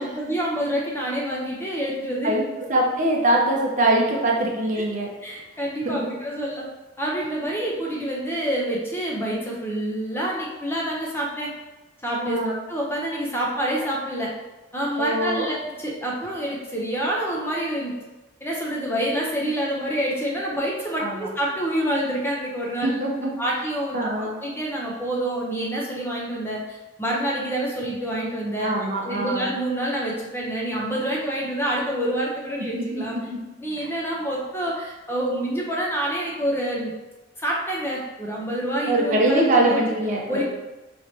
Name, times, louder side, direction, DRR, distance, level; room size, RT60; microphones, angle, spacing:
voice 1, 0.0-2.3 4.8-4.9 5.2-6.6 7.0-11.5 12.0-14.3 14.7-17.9 18.4-22.9 23.4-28.7 29.0-33.1 33.6-36.9 37.4-39.8 40.3-40.4, right 1 dB, 10° left, -3 dB, 0.6 m, -27 dB
voice 2, 2.7-5.1 5.8-6.0 12.2-12.5 15.0-15.5 21.0-21.3 22.8-23.3 23.9-24.3 28.6-29.5 32.7-33.4 33.8-33.9 38.9-40.4, right 1 dB, 40° right, -2 dB, 0.7 m, -23 dB
4.7 x 3.1 x 2.7 m, 1.1 s
head